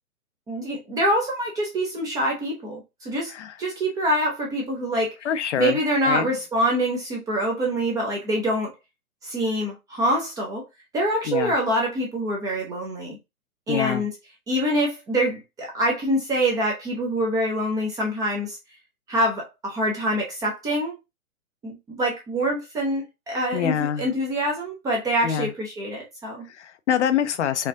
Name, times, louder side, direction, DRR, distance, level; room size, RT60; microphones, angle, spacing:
voice 1, 0.5-3.3 3.6-5.1 5.6-8.7 9.2-10.7 10.9-13.2 13.7-14.1 14.5-18.6 19.1-20.9 21.6-26.4, right 1 dB, 10° right, 0.6 m, -25 dB
voice 2, 5.2-5.8 6.0-6.3 11.3-11.5 13.7-14.1 23.5-24.1 25.2-25.5 26.5-27.7, left 9 dB, 50° left, 0.6 m, -25 dB
4.3 x 2.4 x 2.6 m
hypercardioid pair, 130°, 44 cm